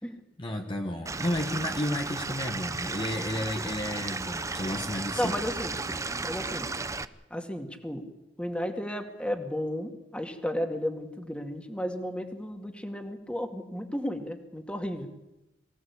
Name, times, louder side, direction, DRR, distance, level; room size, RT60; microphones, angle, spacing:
voice 1, 0.4-5.3, left 1 dB, 25° left, 3 dB, 1.4 m, -32 dB
Stream / Liquid, 1.1-7.1, right 3 dB, 15° right, 0.7 m, -34 dB
voice 2, 5.1-5.8 6.2-6.7 7.3-8.0 8.4-15.2, equal, 5° left, 5 dB, 2.2 m, -33 dB
24.0 x 16.5 x 8.5 m, 0.98 s
head